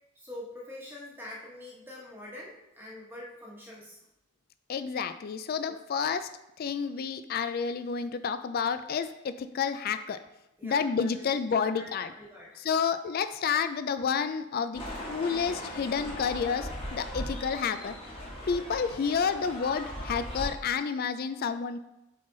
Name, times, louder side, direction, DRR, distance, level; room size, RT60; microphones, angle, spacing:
voice 1, 0.1-4.0 5.7-5.8 10.6-11.3 11.5-12.6, left 1 dB, 10° right, -4 dB, 1.1 m, -45 dB
voice 2, 4.7-6.3 6.6-10.2 10.6-12.1 12.6-14.8 15.1-17.9 18.5-21.8, left 6 dB, 45° left, 10 dB, 0.3 m, -30 dB
sound 1, 14.7-20.5, equal, 25° left, 1.4 m, -38 dB
7.4 x 4.0 x 3.9 m, 0.89 s
head